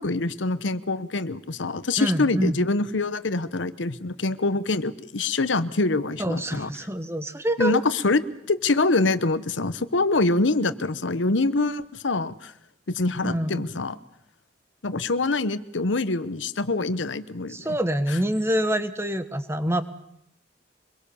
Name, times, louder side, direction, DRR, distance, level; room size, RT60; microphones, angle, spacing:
voice 1, 0.0-6.7 7.6-8.2 8.5-12.5 12.9-14.0 14.8-17.6, left 3 dB, 85° left, 14 dB, 1.1 m, -25 dB
voice 2, 2.0-2.6 6.2-7.8 13.2-13.6 17.5-19.8, equal, 15° right, 10 dB, 1.3 m, -26 dB
25.0 x 22.0 x 7.1 m, 0.75 s
head